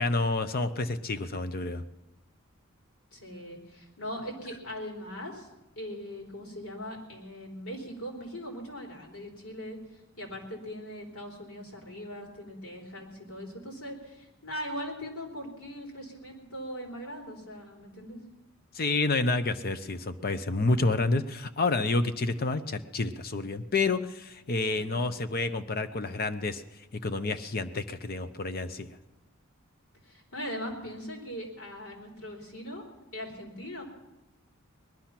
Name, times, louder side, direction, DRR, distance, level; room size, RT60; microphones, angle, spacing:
voice 1, 0.0-1.8 18.7-26.6 27.0-29.0, left 3 dB, 45° left, 10 dB, 0.7 m, -29 dB
voice 2, 3.1-5.5 5.8-9.8 10.2-18.2 24.7-25.0 30.0-32.8 33.1-33.8, equal, 80° left, 0 dB, 4.0 m, -40 dB
20.0 x 12.0 x 5.9 m, 0.98 s
head